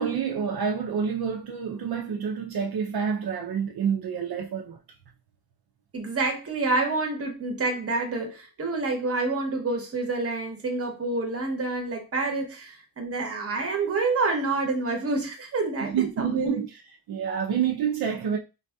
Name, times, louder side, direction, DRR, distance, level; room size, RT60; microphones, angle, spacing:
voice 1, 0.0-4.8 15.8-16.7 17.1-18.4, right 7 dB, 75° right, 0.6 m, -28 dB
voice 2, 5.9-16.6 17.3-17.4, right 3 dB, 40° right, 0.8 m, -28 dB
3.9 x 2.6 x 2.2 m
wide cardioid pair, 180°, 37 cm